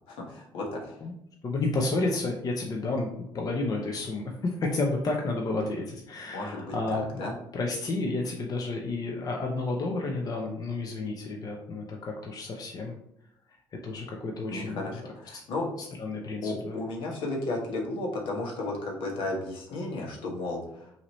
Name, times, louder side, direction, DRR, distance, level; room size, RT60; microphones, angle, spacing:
voice 1, 0.1-1.0 6.3-7.3 14.5-15.7 16.4-20.9, left 2 dB, 75° left, -1 dB, 1.3 m, -34 dB
voice 2, 1.4-3.1 3.3-7.3 7.5-12.9 13.8-15.0 15.3-15.4 15.8-16.8, left 2 dB, 45° left, 1 dB, 0.8 m, -31 dB
5.7 x 2.9 x 3.1 m, 0.76 s
supercardioid pair, 80°, 9 cm